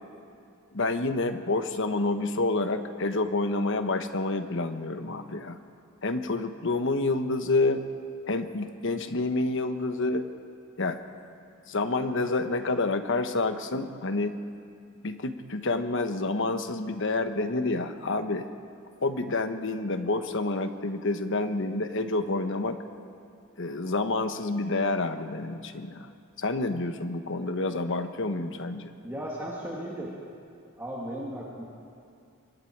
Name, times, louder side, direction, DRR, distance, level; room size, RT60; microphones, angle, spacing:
voice 1, 0.7-5.6 6.0-7.8 8.3-10.3 10.8-11.0 11.7-14.3 15.0-18.5 19.0-22.8 23.6-26.1 26.4-28.9, left 2 dB, 60° left, 8 dB, 1.2 m, -28 dB
voice 2, 29.0-30.1 30.8-31.6, right 1 dB, 10° right, -5 dB, 2.5 m, -36 dB
26.0 x 22.5 x 4.7 m, 2.4 s
head